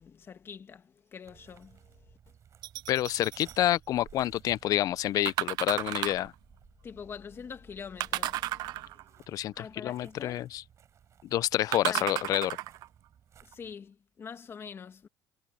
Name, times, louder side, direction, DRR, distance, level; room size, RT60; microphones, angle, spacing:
voice 1, 0.0-2.2 6.8-8.7 9.6-10.5 11.9-12.1 13.4-15.1, left 6 dB, 35° left, 2.0 m, -45 dB
sound 1, 1.2-13.7, right 8 dB, 45° right, 6.4 m, -58 dB
sound 2, 2.6-3.6 5.3-6.3 8.0-9.2 11.7-12.9 13.5-13.6, right 16 dB, 70° right, 0.6 m, -33 dB
voice 2, 2.9-6.3 9.3-9.5 9.8-10.6 11.3-12.6, left 13 dB, 55° left, 0.5 m, -28 dB
cardioid pair, 120°, 7 cm